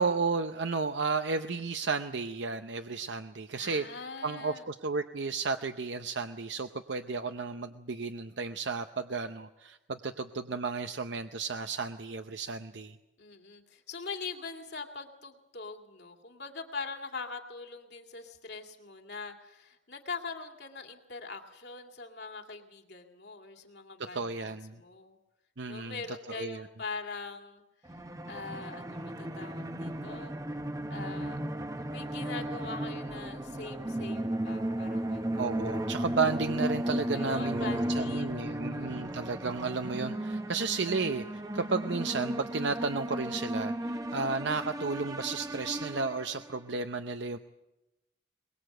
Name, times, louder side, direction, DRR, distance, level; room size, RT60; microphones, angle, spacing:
voice 1, 0.0-3.9 4.2-13.0 24.1-24.8 25.6-26.0 26.3-26.6 35.4-47.4, right 4 dB, 75° right, 7 dB, 0.7 m, -33 dB
voice 2, 3.6-4.7 13.2-25.2 25.7-27.6 27.9-28.0 28.3-30.3 30.9-31.4 31.8-35.5 37.1-39.1, left 4 dB, 60° left, 4 dB, 2.4 m, -42 dB
sound 1, 27.8-46.6, right 1 dB, 20° right, 0.9 m, -35 dB
22.5 x 21.5 x 7.9 m, 0.97 s
head